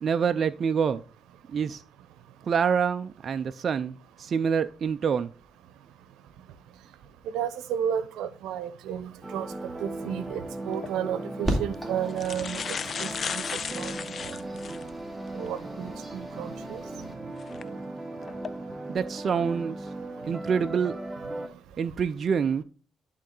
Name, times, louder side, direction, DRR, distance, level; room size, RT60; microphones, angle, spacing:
voice 1, 0.0-1.0 1.5-1.8 2.5-5.3 18.9-19.8 20.2-21.0 21.8-22.6, right 6 dB, 50° right, 9 dB, 0.4 m, -26 dB
voice 2, 7.3-9.5 9.8-12.6 13.0-13.4 13.7-13.9 14.2-14.3 15.3-16.8, right 9 dB, 90° right, 14 dB, 0.8 m, -32 dB
sound 1, 9.2-21.5, right 2 dB, 15° right, 1.0 m, -38 dB
sound 2, 10.7-10.9 11.7-11.8 12.1-14.9 15.5-15.6 17.4-17.6 18.2-18.5, left 6 dB, 50° left, 0.4 m, -34 dB
sound 3, 11.4-17.1, right 1 dB, 5° left, 2.7 m, -37 dB
11.0 x 3.8 x 3.8 m, 0.40 s
cardioid pair, 90°, 0 cm